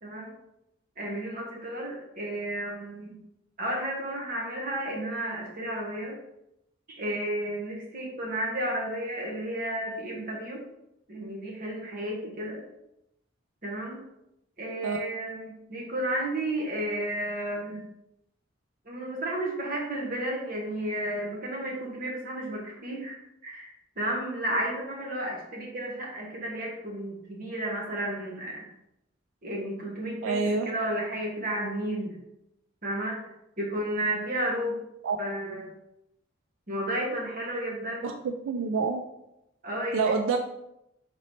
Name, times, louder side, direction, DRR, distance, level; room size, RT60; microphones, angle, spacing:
voice 1, 0.0-0.3 1.0-3.2 3.6-6.2 6.9-10.6 11.1-12.6 13.6-14.0 14.6-17.8 18.9-28.7 29.4-32.2 32.8-33.2 33.6-34.8 35.2-35.8 36.7-38.1 39.6-40.1, right 1 dB, 45° right, -1 dB, 1.2 m, -32 dB
voice 2, 30.2-30.7 35.0-35.2 38.0-39.0 39.9-40.4, right 4 dB, 90° right, 6 dB, 0.4 m, -27 dB
4.0 x 3.0 x 4.1 m, 0.84 s
head